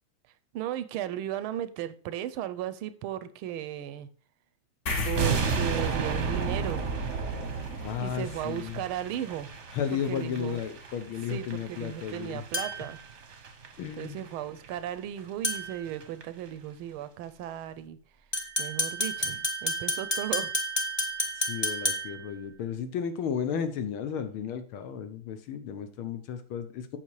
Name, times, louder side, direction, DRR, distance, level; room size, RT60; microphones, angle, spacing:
voice 1, 0.5-4.1 5.0-6.9 8.0-9.5 9.9-10.6 11.3-13.0 14.0-18.0 18.6-20.5, right 11 dB, 80° right, 1.4 m, -35 dB
sound 1, 4.9-11.6, left 2 dB, 45° left, 1.2 m, -39 dB
sound 2, 5.1-14.3 14.6-14.8 15.2-15.3 15.5-15.6 15.9-16.2 16.5-16.6, right 5 dB, 45° right, 1.0 m, -33 dB
voice 2, 7.8-8.8 9.7-12.4 13.8-14.2 21.4-27.0, left 8 dB, 75° left, 1.7 m, -34 dB
sound 3, 12.5-13.0 15.4-15.8 18.3-22.3, equal, 25° left, 0.5 m, -30 dB
8.2 x 5.9 x 4.7 m
omnidirectional pair, 2.4 m